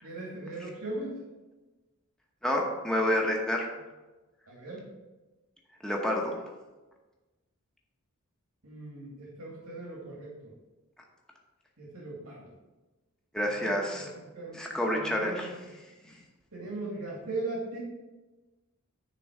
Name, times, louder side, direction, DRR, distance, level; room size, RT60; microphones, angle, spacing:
voice 1, 0.0-1.2 4.5-4.8 8.6-10.5 11.8-12.5 13.4-15.5 16.5-17.8, right 2 dB, 85° right, -4 dB, 2.5 m, -39 dB
voice 2, 2.4-3.7 5.8-6.4 13.3-14.1 14.5-15.5 16.0-16.2, left 1 dB, 5° left, -1 dB, 1.0 m, -28 dB
9.9 x 3.8 x 6.5 m, 1.2 s
head